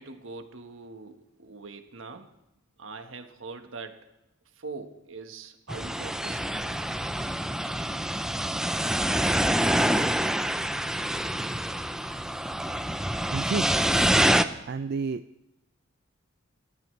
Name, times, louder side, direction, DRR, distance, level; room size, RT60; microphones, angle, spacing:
voice 1, 0.0-2.3 2.8-4.1 4.5-7.0 7.8-7.9, right 3 dB, 80° right, 6 dB, 1.5 m, -43 dB
sound 1, 5.7-14.4, right 1 dB, 5° right, 0.5 m, -26 dB
voice 2, 13.3-14.1 14.7-15.2, right 4 dB, 55° right, 10 dB, 0.4 m, -31 dB
26.0 x 13.0 x 3.3 m, 0.88 s
head